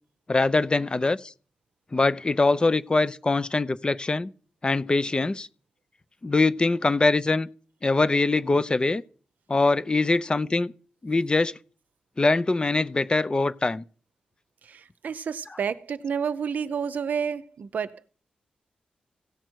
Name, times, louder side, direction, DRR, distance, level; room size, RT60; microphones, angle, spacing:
voice 1, 0.3-1.3 1.9-4.3 4.6-5.5 6.2-7.5 7.8-9.0 9.5-10.7 11.0-11.5 12.2-13.8 15.5-15.6, left 3 dB, 30° left, 0.6 m, -23 dB
voice 2, 14.6-18.1, right 6 dB, 70° right, 0.6 m, -30 dB
16.5 x 6.3 x 4.6 m
cardioid pair, 55°, 3 cm